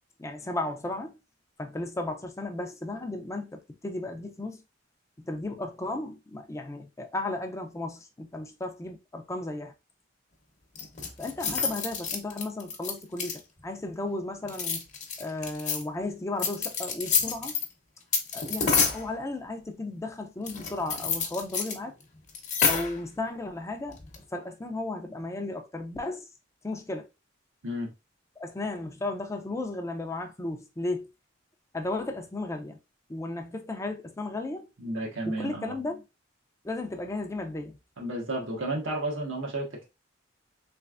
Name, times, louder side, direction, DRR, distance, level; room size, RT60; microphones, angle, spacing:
voice 1, 0.2-1.1 1.6-4.6 5.3-9.7 11.2-14.9 15.2-17.5 18.3-21.9 22.6-24.0 24.3-26.3 26.6-27.1 28.4-31.1 31.7-32.8 33.1-34.7 35.3-36.0 36.6-37.8, left 2 dB, 15° left, 0.4 m, -34 dB
sound 1, 10.8-13.6 14.4-15.8 16.4-17.7 18.1-19.1 20.5-21.7 22.0-22.1 22.3-23.0 23.9-24.2, left 5 dB, 40° left, 0.8 m, -28 dB
voice 2, 34.8-35.7 38.0-39.9, right 1 dB, 90° right, 1.2 m, -32 dB
3.3 x 3.2 x 2.4 m
head